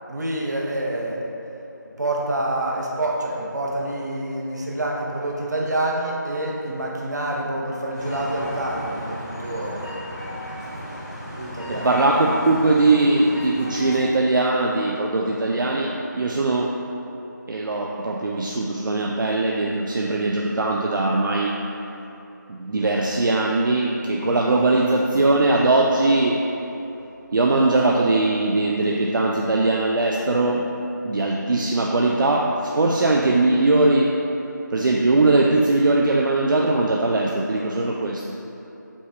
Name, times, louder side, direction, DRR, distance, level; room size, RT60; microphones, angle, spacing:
voice 1, 0.1-1.2 2.0-9.8 11.4-11.9, right 1 dB, 60° right, -2 dB, 0.7 m, -27 dB
sound 1, 7.9-14.0, equal, 15° left, 0.5 m, -35 dB
voice 2, 11.7-16.8 17.5-21.6 22.5-26.5 27.3-30.7 31.0-34.2 34.7-38.4, right 2 dB, 80° right, -1 dB, 0.4 m, -20 dB
5.2 x 3.3 x 2.5 m, 2.9 s
figure-of-eight pair, 170°, 11 cm